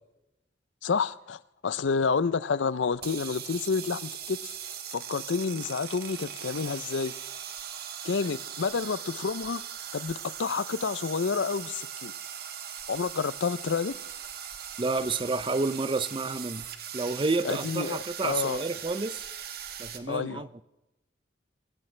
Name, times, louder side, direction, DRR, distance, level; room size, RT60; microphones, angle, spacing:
voice 1, 0.8-4.5 4.9-7.1 8.0-9.6 9.9-12.1 12.9-13.9 17.4-18.6 20.1-20.4, left 5 dB, 85° left, 0.5 m, -29 dB
sound 1, 2.9-20.0, right 9 dB, 55° right, 1.3 m, -40 dB
voice 2, 14.8-16.7 16.9-19.3 19.8-20.6, right 3 dB, 25° right, 0.5 m, -30 dB
23.5 x 14.5 x 3.3 m
head